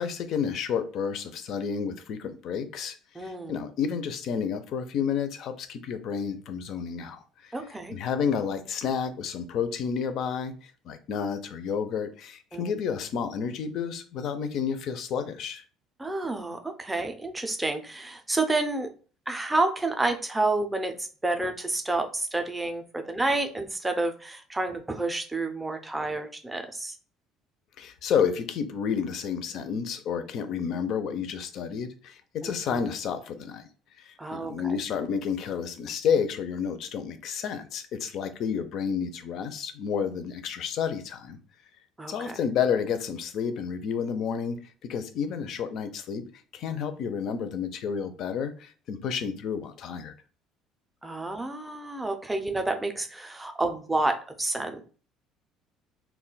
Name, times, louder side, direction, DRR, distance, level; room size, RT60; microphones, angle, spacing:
voice 1, 0.0-7.6 7.9-15.6 27.8-33.6 34.0-41.4 42.1-46.3 46.5-50.1, left 7 dB, 55° left, 10 dB, 0.4 m, -30 dB
voice 2, 3.2-3.5 7.5-7.9 12.5-12.6 16.0-18.9 19.3-27.0 32.4-32.8 34.2-34.7 42.0-42.4 51.0-54.9, right 2 dB, 10° right, 5 dB, 0.4 m, -29 dB
2.3 x 2.1 x 3.8 m, 0.39 s
cardioid pair, 140°, 0 cm